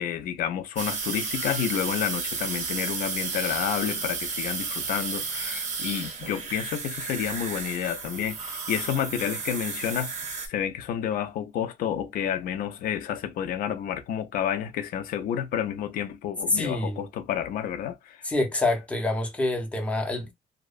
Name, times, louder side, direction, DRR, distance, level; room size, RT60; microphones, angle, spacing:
voice 1, 0.0-10.1 10.5-18.2, left 9 dB, 75° left, 0.4 m, -30 dB
sound 1, 0.8-10.5, right 5 dB, 55° right, 0.6 m, -33 dB
voice 2, 16.5-17.0 18.2-20.3, left 2 dB, 10° left, 0.5 m, -26 dB
2.6 x 2.1 x 2.4 m
cardioid pair, 180°, 15 cm